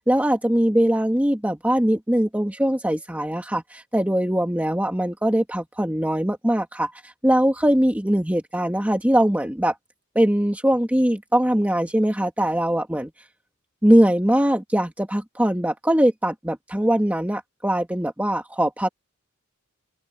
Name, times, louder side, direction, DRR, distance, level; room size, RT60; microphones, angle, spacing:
voice 1, 0.0-9.8 10.2-13.1 13.8-18.9, right 1 dB, 10° right, 1.8 m, -21 dB
head